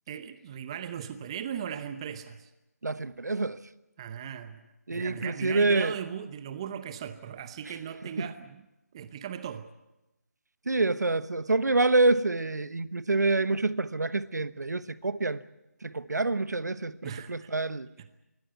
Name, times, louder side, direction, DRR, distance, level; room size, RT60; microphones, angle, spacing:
voice 1, 0.1-2.5 4.0-8.6 8.9-9.7 17.0-17.6 18.0-18.2, right 8 dB, 20° right, 0.8 m, -38 dB
voice 2, 2.8-3.6 4.9-5.9 8.2-8.3 10.7-15.4 15.8-17.9, right 2 dB, 85° right, 1.1 m, -27 dB
22.5 x 17.0 x 9.4 m
figure-of-eight pair, 165°, 9 cm